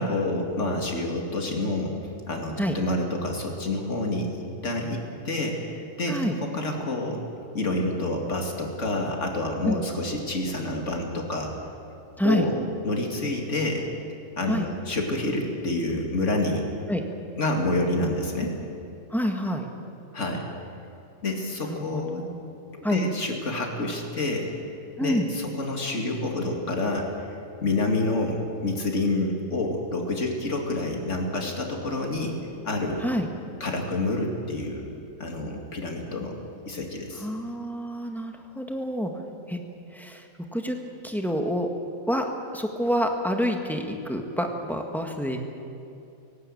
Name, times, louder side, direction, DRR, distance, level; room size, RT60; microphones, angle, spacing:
voice 1, 0.0-2.0 2.3-4.3 4.6-7.2 7.5-11.5 12.2-12.5 12.8-13.9 14.4-16.7 17.4-18.5 20.1-20.5 21.2-22.3 22.7-24.5 25.0-27.1 27.6-32.4 32.6-33.0 33.6-34.9 35.2-36.4 36.7-37.3, left 2 dB, 60° left, 1 dB, 2.8 m, -28 dB
voice 2, 12.2-12.5 14.5-14.7 16.9-17.0 19.1-19.7 21.7-22.0 22.8-23.0 25.0-25.3 33.0-33.3 37.2-39.1 39.5-39.6 39.9-40.3 40.5-40.8 41.0-41.7 42.1-45.4, equal, ahead, 3 dB, 1.7 m, -27 dB
18.0 x 17.0 x 8.7 m, 2.7 s
omnidirectional pair, 1.5 m